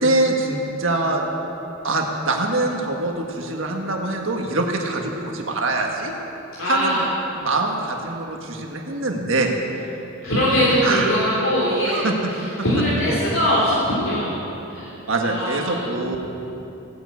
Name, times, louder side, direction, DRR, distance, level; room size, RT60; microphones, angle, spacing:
voice 1, 0.0-1.2 1.8-6.1 6.6-7.0 7.4-9.6 10.8-11.3 11.9-12.2 15.1-16.2, right 2 dB, 65° right, 1 dB, 1.7 m, -23 dB
voice 2, 6.5-7.0 7.4-7.5 10.2-12.0 12.6-14.3 14.7-14.9 15.2-16.0, equal, 75° left, -8 dB, 3.2 m, -21 dB
16.0 x 9.5 x 8.5 m, 3.0 s
head